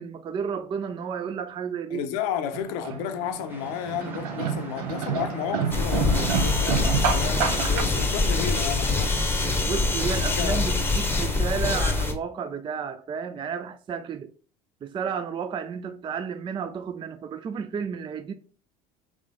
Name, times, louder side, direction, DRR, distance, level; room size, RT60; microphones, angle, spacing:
voice 1, 0.0-2.1 9.7-14.3 14.8-18.3, right 6 dB, 25° right, 0.4 m, -32 dB
voice 2, 1.9-9.2 10.3-10.6, left 9 dB, 65° left, 0.6 m, -32 dB
sound 1, 2.5-7.8, right 6 dB, 75° right, 0.7 m, -29 dB
sound 2, 3.5-9.8, right 1 dB, 10° right, 1.1 m, -45 dB
sound 3, 5.7-12.1, left 3 dB, 10° left, 0.9 m, -24 dB
3.6 x 3.2 x 3.6 m
hypercardioid pair, 70°, 20 cm